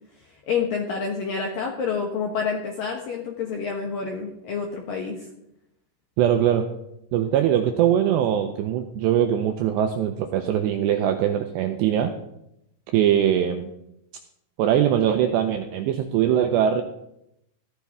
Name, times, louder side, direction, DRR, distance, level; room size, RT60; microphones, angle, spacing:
voice 1, 0.5-5.3, left 5 dB, 75° left, 1 dB, 2.1 m, -28 dB
voice 2, 6.2-6.7 7.1-12.1 12.9-13.7 14.6-16.8, right 10 dB, 85° right, 6 dB, 2.5 m, -21 dB
15.5 x 13.5 x 3.6 m, 0.82 s
omnidirectional pair, 5.8 m